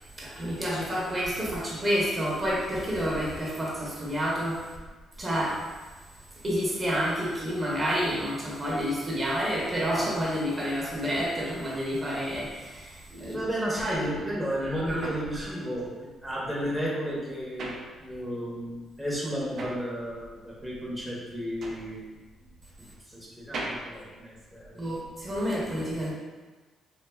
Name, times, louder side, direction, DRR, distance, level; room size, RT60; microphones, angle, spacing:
voice 1, 0.2-4.6 5.2-5.6 6.4-13.4 13.7-14.1 14.6-15.0 24.7-26.1, equal, 30° right, -5 dB, 0.8 m, -29 dB
voice 2, 13.2-17.7 18.0-22.1 23.1-24.8 25.6-25.8, equal, 5° left, -6 dB, 0.7 m, -33 dB
sound 1, 15.0-18.5 18.8-25.1, right 2 dB, 60° right, 0.4 m, -41 dB
3.2 x 2.3 x 2.2 m, 1.3 s
cardioid pair, 90°, 0 cm